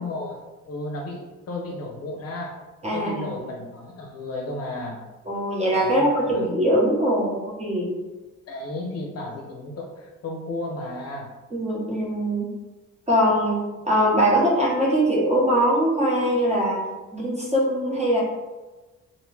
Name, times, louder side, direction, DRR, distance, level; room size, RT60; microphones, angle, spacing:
voice 1, 0.0-2.6 2.9-5.0 5.8-6.5 8.5-11.3, left 2 dB, 55° left, 1 dB, 0.6 m, -34 dB
voice 2, 2.8-3.4 5.3-7.9 11.5-12.5 13.1-13.6 13.9-16.8 17.1-18.2, equal, 20° right, -4 dB, 0.9 m, -22 dB
2.5 x 2.2 x 3.1 m, 1.2 s
cardioid pair, 90°, 30 cm